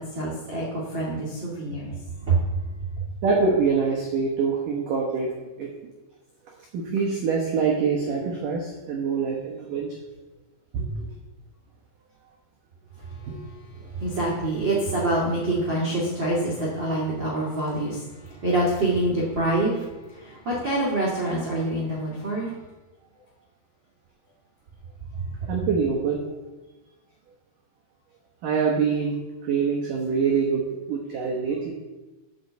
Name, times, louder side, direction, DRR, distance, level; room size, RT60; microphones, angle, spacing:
voice 1, 0.0-1.9 2.3-2.4 13.9-18.0 18.4-19.8 20.1-22.5, right 2 dB, 55° right, -6 dB, 1.2 m, -25 dB
voice 2, 3.2-5.7 6.7-10.0 10.7-11.1 13.3-13.4 13.8-13.9 14.4-14.5 25.5-26.3 28.4-29.2 29.4-31.7, right 5 dB, 90° right, -1 dB, 1.8 m, -25 dB
8.6 x 6.5 x 7.9 m, 1.1 s
omnidirectional pair, 5.8 m